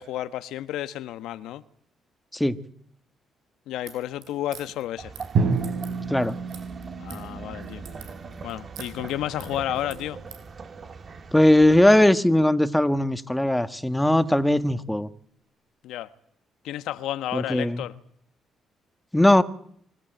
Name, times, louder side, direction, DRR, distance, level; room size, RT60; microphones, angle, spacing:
voice 1, 0.0-1.6 3.7-5.1 7.0-7.9 8.4-10.2 15.8-16.1 16.6-17.9, left 13 dB, 90° left, 1.1 m, -31 dB
sound 1, 3.7-10.5, right 8 dB, 90° right, 6.9 m, -47 dB
sound 2, 5.0-12.0, right 4 dB, 45° right, 2.4 m, -41 dB
Drum, 5.4-9.4, right 4 dB, 70° right, 7.0 m, -30 dB
voice 2, 11.3-15.1 17.3-17.8 19.1-19.4, left 1 dB, 5° left, 1.6 m, -19 dB
25.0 x 16.5 x 9.2 m
cardioid pair, 90°, 0 cm